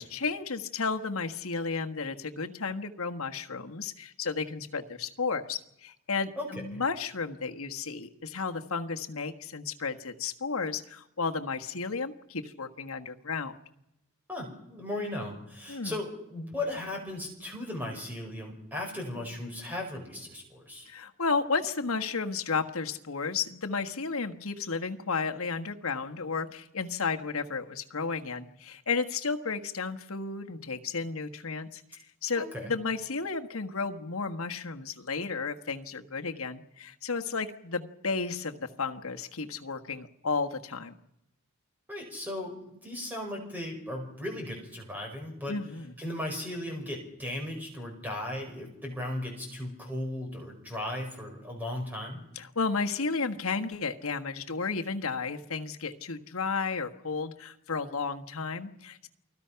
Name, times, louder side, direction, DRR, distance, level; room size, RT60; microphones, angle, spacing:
voice 1, 0.0-13.6 15.7-16.0 20.9-40.9 45.5-45.9 52.3-59.1, left 4 dB, 70° left, 5 dB, 1.4 m, -33 dB
voice 2, 6.4-6.8 14.3-20.9 32.4-32.7 41.9-45.6 46.0-52.2, left 1 dB, 10° right, 1 dB, 5.2 m, -36 dB
28.5 x 20.0 x 5.8 m, 0.86 s
head